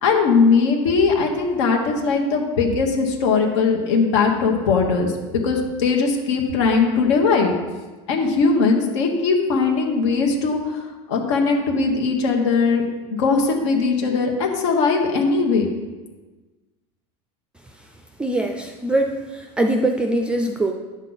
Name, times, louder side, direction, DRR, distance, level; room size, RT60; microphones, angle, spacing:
voice 1, 0.0-7.5 8.1-10.8 11.1-12.8 13.2-15.7, left 4 dB, 85° left, 1 dB, 1.4 m, -19 dB
voice 2, 18.2-20.7, right 1 dB, 5° right, 4 dB, 0.4 m, -22 dB
9.9 x 6.5 x 4.0 m, 1.2 s
supercardioid pair, 160°, 15 cm